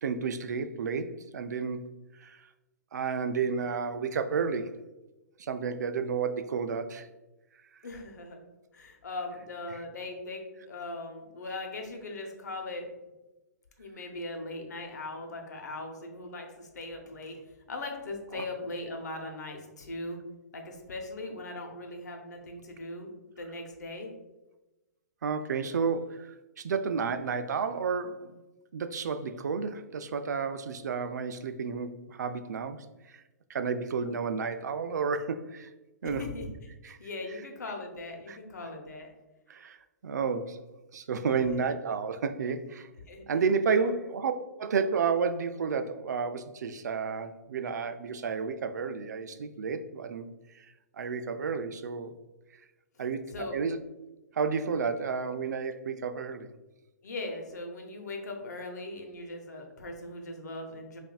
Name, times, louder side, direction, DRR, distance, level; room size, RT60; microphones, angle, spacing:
voice 1, 0.0-1.9 2.2-2.5 2.9-4.8 5.4-7.1 18.3-18.4 25.2-28.4 28.7-33.2 33.5-35.7 36.0-36.2 36.8-37.0 38.3-38.4 39.5-39.8 40.0-40.6 40.9-42.9 43.3-44.3 44.6-50.3 50.5-50.7 51.0-52.1 53.0-53.8 54.3-56.5, right 5 dB, 85° right, 9 dB, 0.4 m, -31 dB
voice 2, 7.8-8.4 8.7-12.9 13.8-17.4 17.7-20.2 20.5-24.1 36.0-36.5 36.8-39.1 41.3-41.6 43.1-43.3 43.7-43.9 53.3-53.6 57.0-61.0, left 2 dB, 85° left, 2 dB, 0.9 m, -39 dB
5.6 x 2.6 x 2.3 m, 1.0 s
hypercardioid pair, 135°, 9 cm